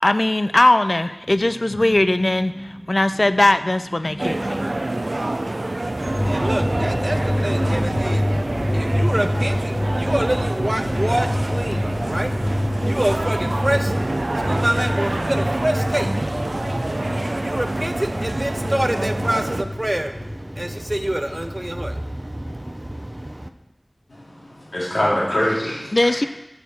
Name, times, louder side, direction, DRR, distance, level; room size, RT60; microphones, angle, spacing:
voice 1, 0.0-4.6 25.9-26.3, left 1 dB, 55° left, 12 dB, 0.4 m, -19 dB
sound 1, 1.3-5.8, equal, 10° right, 3.7 m, -36 dB
sound 2, 4.2-19.6, right 2 dB, 60° right, 0.5 m, -27 dB
voice 2, 5.8-23.5, right 1 dB, 30° right, 8 dB, 0.7 m, -27 dB
sound 3, 6.0-22.7, equal, 20° left, 1.4 m, -26 dB
voice 3, 24.1-26.2, left 1 dB, 85° left, -7 dB, 3.3 m, -24 dB
6.9 x 6.4 x 6.9 m, 0.93 s
wide cardioid pair, 40°, 0 cm